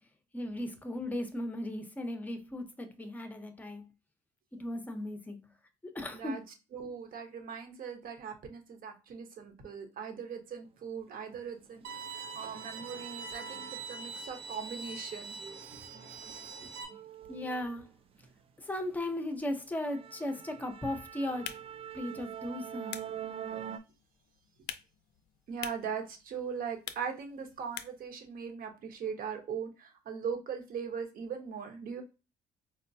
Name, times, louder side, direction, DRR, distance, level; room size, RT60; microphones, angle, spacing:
voice 1, 0.3-3.8 4.5-5.5 5.9-6.4 17.3-17.9 18.6-21.5 21.9-23.0, left 1 dB, 10° left, 0.6 m, -36 dB
voice 2, 6.7-15.4 25.5-32.0, right 6 dB, 55° right, 1.0 m, -40 dB
sound 1, 11.3-11.4 11.8-14.2 14.5-18.3 18.7-19.0 19.3-19.4 19.8-23.8, right 9 dB, 35° right, 0.4 m, -45 dB
Bowed string instrument, 11.8-16.8, right 4 dB, 85° right, 0.7 m, -43 dB
sound 2, 21.3-28.1, left 11 dB, 80° left, 0.4 m, -48 dB
4.4 x 2.1 x 2.6 m
cardioid pair, 110°, 17 cm